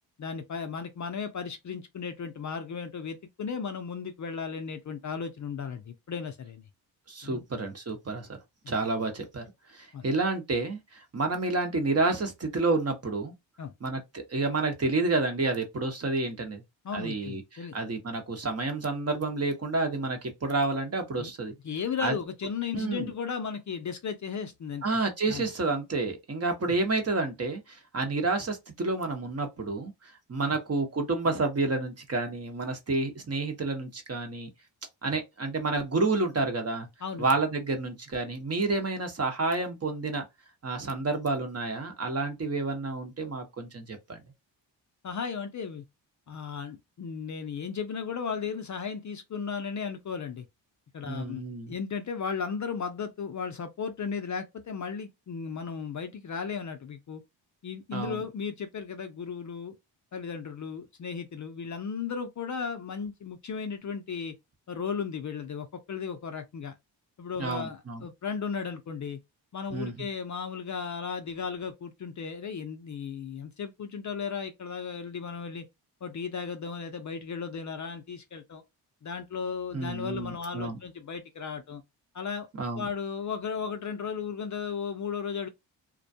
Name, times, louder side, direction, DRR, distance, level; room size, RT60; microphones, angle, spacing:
voice 1, 0.2-6.7 7.2-7.4 9.9-10.0 13.6-13.7 16.8-17.8 21.2-21.3 21.6-25.0 25.3-25.4 30.5-30.6 37.0-37.3 45.0-45.8 46.3-50.5 50.9-51.4 51.7-57.2 57.6-59.7 60.1-64.3 64.7-66.7 67.2-69.2 69.5-75.7 76.0-78.6 79.0-81.8 82.1-82.5 82.8-85.5, left 6 dB, 40° left, 0.5 m, -35 dB
voice 2, 7.1-8.4 8.7-9.4 9.7-13.3 13.8-16.6 16.9-21.5 22.0-22.1 22.7-23.1 24.8-29.9 30.3-34.5 35.0-36.9 37.2-40.2 40.6-44.2 51.1-51.7 57.9-58.2 67.4-68.0 69.7-70.1 79.7-80.8 82.6-82.9, right 3 dB, 30° right, 0.9 m, -29 dB
2.3 x 2.2 x 2.6 m
cardioid pair, 60°, 46 cm